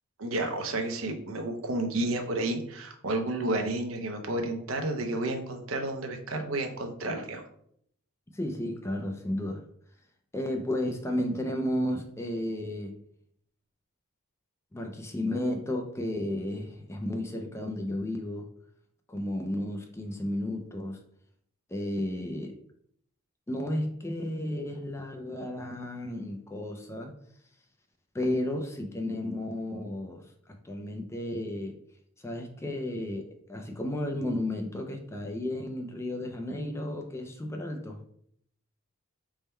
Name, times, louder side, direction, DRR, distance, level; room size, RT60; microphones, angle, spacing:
voice 1, 0.2-7.5, right 2 dB, 75° right, 4 dB, 0.6 m, -31 dB
voice 2, 8.3-9.6 10.3-13.0 14.7-18.5 19.1-21.0 21.7-22.6 23.5-27.2 28.1-30.3 30.6-31.8 32.2-38.0, left 1 dB, 15° left, 3 dB, 0.3 m, -33 dB
3.5 x 2.2 x 4.2 m, 0.68 s
head